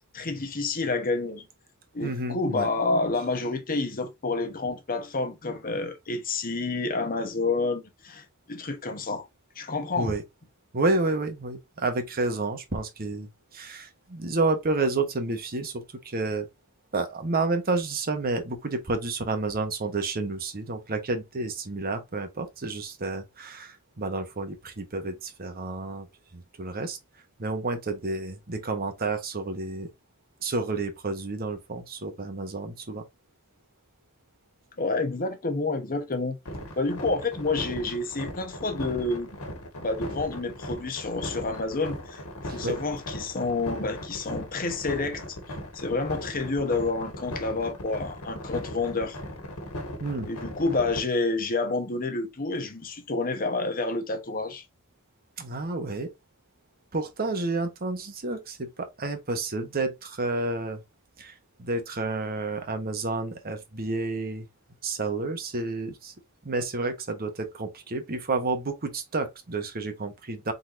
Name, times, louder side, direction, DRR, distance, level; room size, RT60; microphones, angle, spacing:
voice 1, 0.1-1.4 1.9-9.3 9.6-10.1 34.8-36.4 36.8-39.3 39.8-45.2 45.7-49.2 50.3-54.6, left 3 dB, 40° left, 0.9 m, -29 dB
voice 2, 2.0-2.7 10.0-10.2 10.7-16.5 16.9-26.1 26.3-27.0 27.4-29.9 30.4-33.0 42.5-42.8 50.0-50.3 55.4-56.1 56.9-60.8 61.2-64.5 64.8-66.1 66.4-70.5, right 3 dB, 45° right, 1.0 m, -30 dB
sound 1, 36.5-51.0, left 1 dB, 70° left, 1.6 m, -37 dB
4.7 x 3.9 x 2.6 m
head